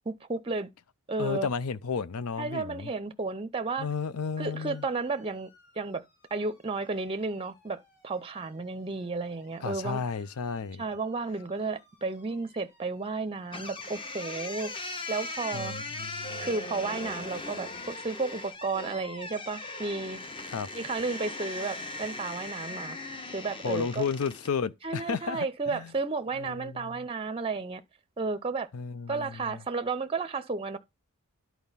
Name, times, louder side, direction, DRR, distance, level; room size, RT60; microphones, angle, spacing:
voice 1, 0.1-0.7 1.1-1.5 2.4-3.9 4.4-5.5 5.8-6.0 6.3-10.0 10.8-14.7 15.1-15.7 16.4-20.2 20.7-23.0 23.3-24.0 24.8-27.8 28.2-28.7 29.1-30.8, right 3 dB, 25° right, 0.6 m, -32 dB
voice 2, 1.2-2.9 3.8-4.8 9.6-10.8 15.5-16.5 20.5-20.7 23.6-25.9 26.4-27.0 28.7-29.6, left 5 dB, 75° left, 0.6 m, -33 dB
sound 1, 4.5-18.5, left 3 dB, 50° left, 6.5 m, -64 dB
sound 2, 13.5-24.6, left 2 dB, 25° left, 0.9 m, -39 dB
11.0 x 4.6 x 5.6 m
head